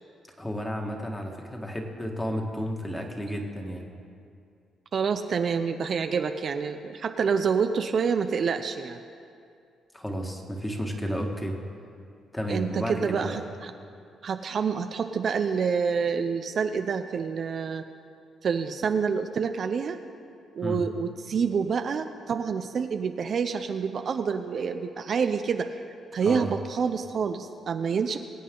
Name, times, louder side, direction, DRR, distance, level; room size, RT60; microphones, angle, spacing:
voice 1, 0.4-3.9 9.9-11.6 12.3-13.4 20.6-20.8 26.2-26.5, equal, 10° left, 1 dB, 1.8 m, -32 dB
voice 2, 4.9-9.0 12.5-13.7 14.2-17.8 18.4-20.0 20.5-25.8 26.1-28.2, right 6 dB, 55° right, 7 dB, 0.6 m, -27 dB
22.5 x 8.5 x 3.8 m, 2.4 s
cardioid pair, 90°, 0 cm